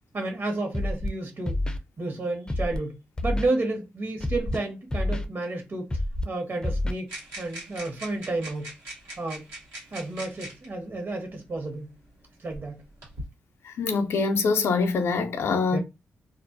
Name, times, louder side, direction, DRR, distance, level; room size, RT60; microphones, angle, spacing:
voice 1, 0.1-1.6 2.0-2.9 3.2-5.9 6.2-7.1 7.4-8.7 9.2-9.5 9.9-11.9 12.4-12.8 15.7-15.8, right 2 dB, 55° right, 1.1 m, -31 dB
Scratching (performance technique), 0.7-1.1 1.5-1.8 2.5-2.8 3.2-3.5 4.2-4.6 4.9-5.2 5.9-6.2 6.6-6.9, left 1 dB, 15° left, 0.5 m, -27 dB
sound 1, 7.1-10.7 11.7-11.8 12.5-13.3, right 1 dB, 85° right, 1.2 m, -41 dB
voice 2, 13.6-15.8, left 4 dB, 75° left, 0.5 m, -24 dB
2.4 x 2.0 x 2.5 m
cardioid pair, 55°, 5 cm